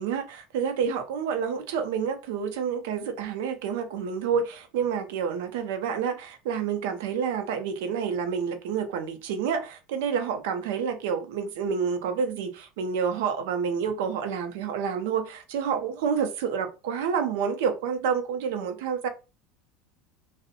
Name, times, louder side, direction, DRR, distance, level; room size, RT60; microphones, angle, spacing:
voice 1, 0.0-19.1, right 6 dB, 85° right, 0.5 m, -29 dB
2.7 x 2.0 x 2.5 m
cardioid pair, 165°, 0 cm